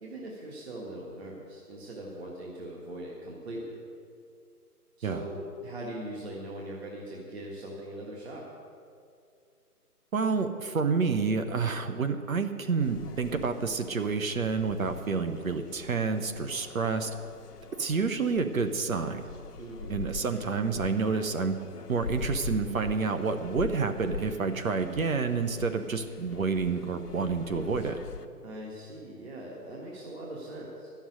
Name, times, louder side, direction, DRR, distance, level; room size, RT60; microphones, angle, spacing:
voice 1, 0.0-3.8 5.0-8.5 19.6-20.0 28.4-30.9, right 1 dB, 45° right, -3 dB, 1.8 m, -41 dB
voice 2, 10.1-17.1 17.8-19.2 19.9-21.6 21.9-28.0, right 5 dB, 60° right, 8 dB, 1.0 m, -29 dB
sound 1, 12.8-28.3, left 6 dB, 80° left, 1.0 m, -43 dB
11.5 x 7.1 x 9.4 m, 2.4 s
hypercardioid pair, 170°, 46 cm